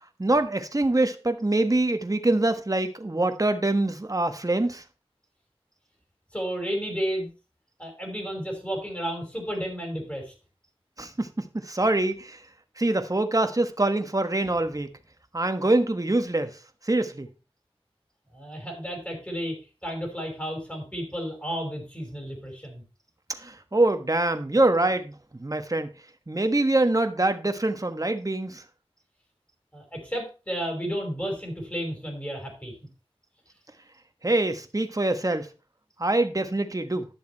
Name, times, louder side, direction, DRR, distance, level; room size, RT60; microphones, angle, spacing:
voice 1, 0.2-4.8 11.0-12.4 12.8-14.9 15.3-16.6 16.8-17.3 23.3-25.1 25.4-25.9 26.3-28.6 34.2-35.5 36.0-37.1, right 2 dB, 35° right, 1.3 m, -24 dB
voice 2, 6.3-7.3 7.8-10.3 18.3-22.8 29.7-32.8, equal, 15° left, 5.4 m, -32 dB
11.0 x 7.0 x 4.5 m
wide cardioid pair, 45°, 10 cm